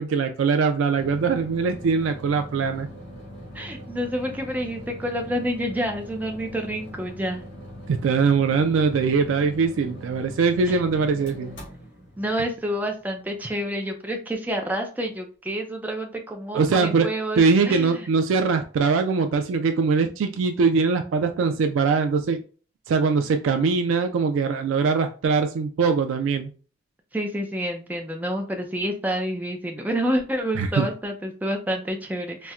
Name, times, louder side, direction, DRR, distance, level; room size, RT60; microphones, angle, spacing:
voice 1, 0.0-2.9 7.9-11.6 16.5-17.1 17.4-22.4 22.9-26.5 30.6-30.9, right 5 dB, 85° right, 7 dB, 0.3 m, -22 dB
sound 1, 1.0-13.5, equal, 65° left, 1.6 m, -41 dB
voice 2, 3.5-7.4 10.7-10.8 12.2-18.1 27.1-32.5, equal, 10° right, 3 dB, 0.4 m, -28 dB
4.1 x 2.1 x 2.3 m, 0.38 s
head